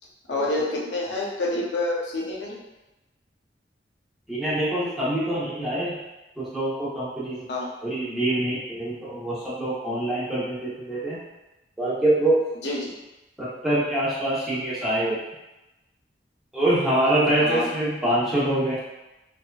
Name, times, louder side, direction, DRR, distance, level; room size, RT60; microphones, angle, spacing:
voice 1, 0.3-2.6 7.5-7.7 12.6-12.9 17.4-17.7, left 2 dB, 75° left, -3 dB, 0.6 m, -27 dB
voice 2, 4.3-6.0 6.4-7.4 7.8-11.2 11.8-12.5 13.4-15.2 16.5-18.8, right 1 dB, ahead, -10 dB, 0.8 m, -25 dB
2.7 x 2.3 x 2.3 m, 1.0 s
head